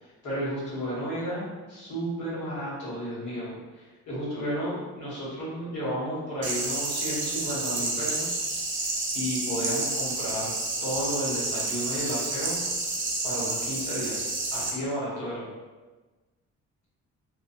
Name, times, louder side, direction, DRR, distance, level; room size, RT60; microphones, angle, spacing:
voice 1, 0.0-8.4 8.7-8.9 9.1-10.5 10.8-12.5 13.2-15.4, equal, 85° left, -8 dB, 1.4 m, -33 dB
sound 1, 6.4-14.7, right 2 dB, 40° right, 0.6 m, -30 dB
2.6 x 2.6 x 2.5 m, 1.3 s
cardioid pair, 90°, 30 cm